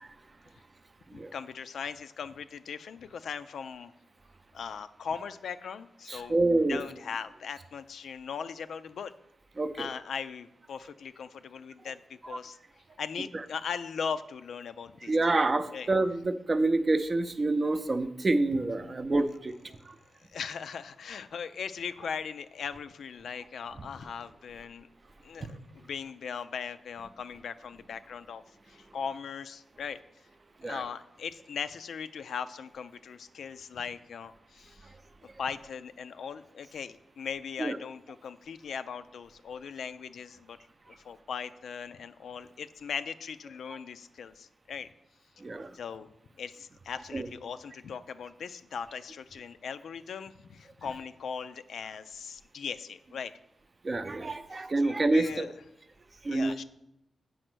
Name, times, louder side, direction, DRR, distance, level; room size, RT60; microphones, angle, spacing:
voice 1, 1.1-3.9 4.5-6.4 6.7-9.1 9.8-12.6 13.0-15.4 15.7-15.9 20.3-24.9 25.2-30.0 30.6-34.9 35.4-40.6 40.9-44.9 45.7-46.1 46.4-53.3 54.5-55.5 56.3-56.6, left 6 dB, 80° left, 11 dB, 0.4 m, -39 dB
voice 2, 6.1-6.8 9.6-9.9 15.0-19.5 19.9-20.0 23.8-23.9 25.4-25.5 30.6-30.8 37.6-37.8 45.4-45.7 47.1-47.3 53.8-55.5 56.2-56.5, right 2 dB, 35° right, 10 dB, 0.5 m, -27 dB
7.7 x 5.0 x 6.1 m, 0.83 s
wide cardioid pair, 105°, 0 cm